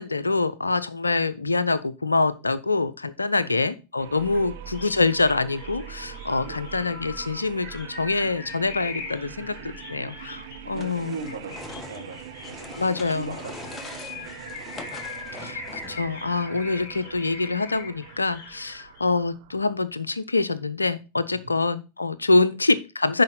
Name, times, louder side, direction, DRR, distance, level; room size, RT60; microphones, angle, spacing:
voice 1, 0.0-9.5 9.9-11.2 12.8-13.4 15.4-15.6 15.9-23.2, left 3 dB, 80° left, 16 dB, 0.6 m, -25 dB
sound 1, 4.0-19.9, right 10 dB, 55° right, 0.9 m, -43 dB
sound 2, 4.1-19.1, left 4 dB, 40° left, 4.0 m, -42 dB
voice 2, 6.3-6.7 9.4-10.1 10.6-14.4, right 4 dB, 80° right, 1 dB, 1.8 m, -40 dB
sound 3, 10.7-16.1, left 3 dB, 20° left, 1.0 m, -42 dB
10.5 x 4.7 x 3.9 m, 0.29 s
figure-of-eight pair, 90°, 0 cm